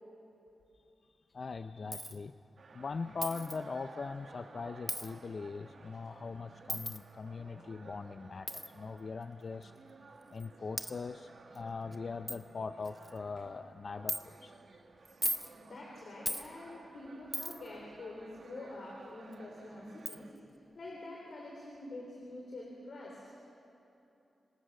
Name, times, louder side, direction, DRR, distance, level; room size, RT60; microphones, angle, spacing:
voice 1, 1.3-2.4 2.7-9.7 10.3-14.6, left 4 dB, 45° left, 10 dB, 0.5 m, -41 dB
Coin (dropping), 1.9-2.2 3.2-3.6 4.9-5.1 6.7-7.0 8.5-8.7 9.6-9.7 10.4-10.5 10.8-10.9 11.6-11.7 11.9-12.0 12.3-12.4 12.9-13.2 14.1-14.2 15.1-15.5 16.3-16.5 17.3-17.7 19.3-19.4 20.1-20.2, equal, ahead, 0.9 m, -36 dB
sound 1, 2.6-20.3, right 3 dB, 55° right, 1.6 m, -56 dB
voice 2, 15.6-20.3 20.7-23.4, left 2 dB, 60° left, -1 dB, 3.5 m, -46 dB
27.0 x 19.0 x 6.5 m, 2.9 s
wide cardioid pair, 125°, 0 cm